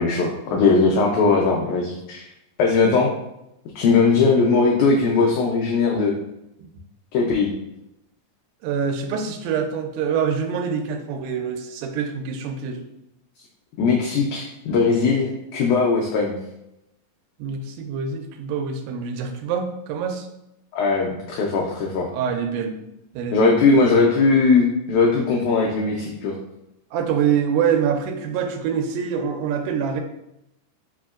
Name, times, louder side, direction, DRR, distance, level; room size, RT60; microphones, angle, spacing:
voice 1, 0.0-2.3 2.6-3.1 3.8-6.1 7.1-7.5 13.8-16.4 20.7-22.1 23.3-26.4, left 4 dB, 85° left, -2 dB, 1.7 m, -19 dB
voice 2, 8.6-12.8 17.4-20.3 22.1-22.8 23.1-23.6 26.9-30.0, right 7 dB, 90° right, 5 dB, 2.3 m, -25 dB
5.2 x 2.7 x 2.4 m, 0.85 s
omnidirectional pair, 4.0 m